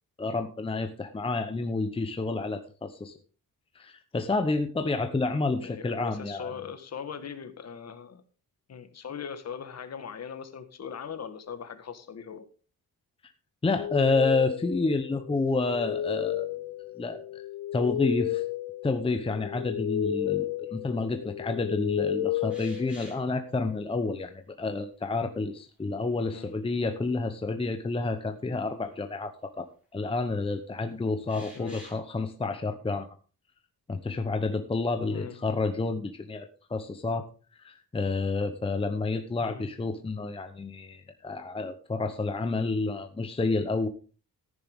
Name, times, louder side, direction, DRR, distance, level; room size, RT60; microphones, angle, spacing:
voice 1, 0.2-3.1 3.7-6.5 13.6-16.5 17.0-17.4 17.7-18.4 18.8-33.1 33.9-37.3 37.6-43.9, left 3 dB, 15° left, 6 dB, 0.8 m, -29 dB
voice 2, 5.6-8.2 8.7-12.5 20.6-20.8 26.3-26.5 31.5-31.8 35.1-35.4 39.4-39.7, left 7 dB, 45° left, 9 dB, 1.5 m, -40 dB
sound 1, 13.8-23.5, left 11 dB, 85° left, 0.7 m, -33 dB
sound 2, 22.5-23.3 24.8-24.9 25.8-26.7 27.1-27.2 29.1-29.2 31.3-32.0, equal, 5° right, 5.1 m, -50 dB
14.5 x 10.0 x 3.6 m, 0.35 s
wide cardioid pair, 160°, 36 cm